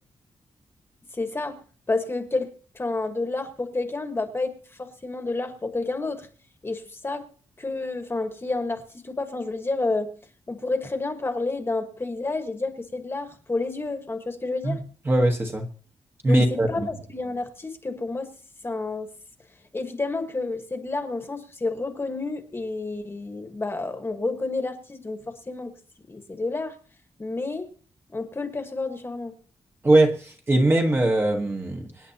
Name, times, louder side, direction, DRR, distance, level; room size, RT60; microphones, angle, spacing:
voice 1, 1.1-6.3 6.6-7.3 7.6-10.1 10.5-14.8 16.2-18.3 18.6-19.1 19.7-25.7 26.1-26.8 27.2-27.7 28.1-29.3, left 3 dB, 20° left, 7 dB, 1.4 m, -30 dB
voice 2, 15.1-15.7 16.2-16.9 29.8-31.9, right 1 dB, 20° right, 3 dB, 1.3 m, -21 dB
25.5 x 9.9 x 2.9 m, 0.40 s
wide cardioid pair, 170°, 11 cm